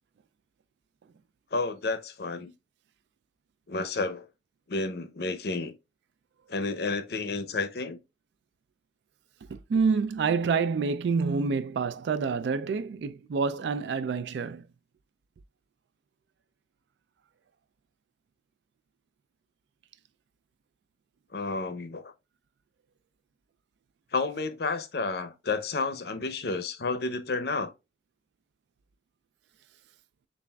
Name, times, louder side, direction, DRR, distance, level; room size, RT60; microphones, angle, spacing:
voice 1, 1.5-2.5 3.7-4.3 4.7-5.7 6.5-8.0 21.3-22.1 24.1-27.7, left 3 dB, 55° left, 0.6 m, -31 dB
voice 2, 9.5-14.6, right 5 dB, 70° right, 0.3 m, -27 dB
6.9 x 2.5 x 2.2 m
head